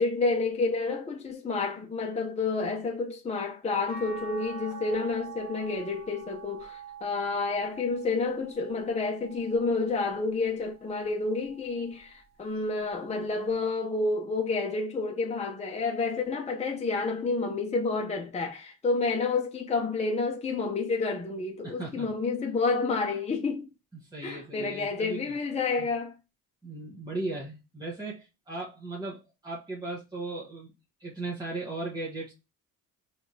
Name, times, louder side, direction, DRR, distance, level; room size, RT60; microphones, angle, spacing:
voice 1, 0.0-23.7 24.2-26.1, left 3 dB, 20° left, 0.7 m, -29 dB
sound 1, 3.9-10.2 10.8-12.1 13.5-13.6, right 6 dB, 50° right, 1.6 m, -45 dB
voice 2, 21.6-22.1 24.0-25.2 25.8-25.9 26.6-30.7 31.0-32.3, right 2 dB, 10° right, 1.3 m, -37 dB
4.4 x 3.4 x 2.8 m
cardioid pair, 95°, 35 cm